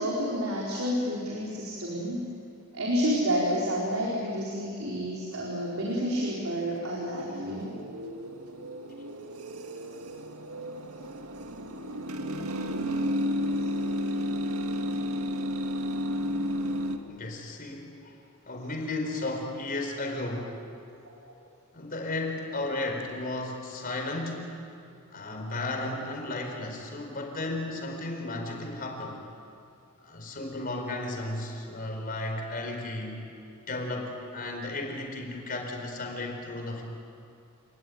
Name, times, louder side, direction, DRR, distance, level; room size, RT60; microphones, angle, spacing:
voice 1, 0.0-2.2 2.7-7.7, equal, 70° right, -4 dB, 4.4 m, -29 dB
sound 1, 5.3-17.0, equal, 90° right, 1.8 m, -33 dB
voice 2, 17.1-18.1 18.5-20.6 21.7-24.6 25.1-29.2 30.0-33.2 33.7-36.8, left 2 dB, 40° left, 2 dB, 4.4 m, -34 dB
29.5 x 19.5 x 9.4 m, 2.5 s
head